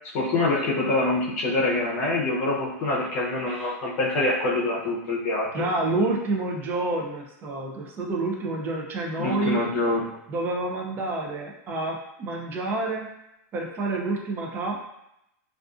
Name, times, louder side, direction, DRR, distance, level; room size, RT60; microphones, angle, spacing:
voice 1, 0.1-5.6 9.2-10.2, left 2 dB, 50° left, -4 dB, 0.6 m, -25 dB
voice 2, 5.5-9.6 10.3-13.1 13.5-14.9, right 2 dB, 25° right, 1 dB, 0.4 m, -28 dB
2.4 x 2.3 x 2.4 m, 0.84 s
supercardioid pair, 150°, 9 cm